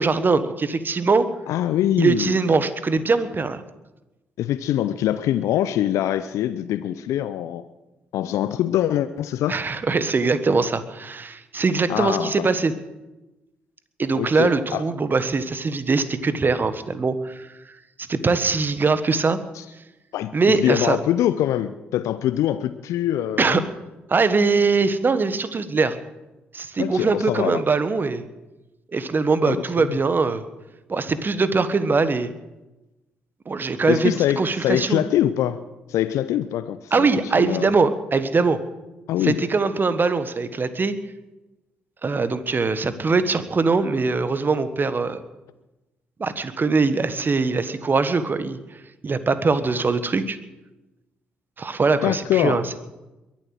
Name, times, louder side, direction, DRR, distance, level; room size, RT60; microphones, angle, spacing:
voice 1, 0.0-1.3 2.0-3.6 9.5-12.7 14.0-17.5 18.1-19.4 20.3-21.0 23.4-23.6 24.1-26.0 26.5-28.2 28.9-30.4 30.9-32.3 33.5-35.0 36.9-38.6 39.2-40.9 42.0-45.2 46.2-48.6 49.0-50.4 51.6-52.8, right 4 dB, 35° right, 12 dB, 1.4 m, -22 dB
voice 2, 1.5-2.4 4.4-7.6 8.1-9.6 11.9-12.5 14.2-14.8 19.5-19.6 20.1-23.6 26.8-27.6 29.4-30.0 33.9-35.6 35.9-37.7 39.1-39.4 52.0-52.6, left 12 dB, 65° left, 13 dB, 0.6 m, -24 dB
22.0 x 7.5 x 7.7 m, 1.0 s
hypercardioid pair, 40°, 6 cm